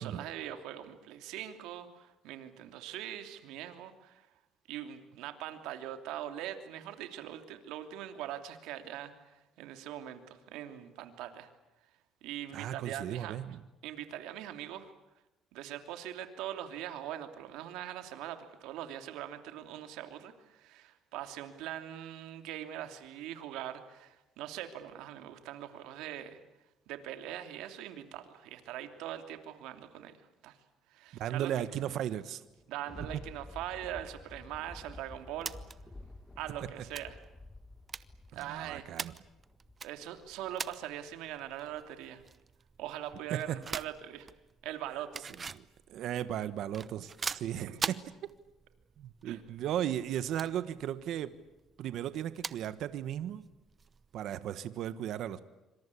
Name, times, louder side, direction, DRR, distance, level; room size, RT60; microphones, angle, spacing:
voice 1, 0.0-4.3 4.7-11.5 12.2-13.4 13.8-14.9 15.5-26.4 26.9-30.6 30.9-31.5 32.7-35.5 36.4-37.2 38.3-38.9 39.8-42.2 42.8-44.3 44.6-45.2 47.7-47.9 49.2-49.4, right 11 dB, 90° right, 8 dB, 2.9 m, -42 dB
voice 2, 12.5-13.6 31.2-32.4 38.3-39.1 43.3-43.6 45.5-45.6 45.9-48.0 49.0-51.3 51.8-53.4 54.1-55.4, right 11 dB, 70° right, 13 dB, 1.4 m, -36 dB
Thunder, 32.4-40.0 40.5-40.6, left 2 dB, 15° left, 1.6 m, -51 dB
sound 1, 34.6-54.2, right 5 dB, 30° right, 1.0 m, -45 dB
26.0 x 26.0 x 8.5 m, 0.99 s
cardioid pair, 115°, 0 cm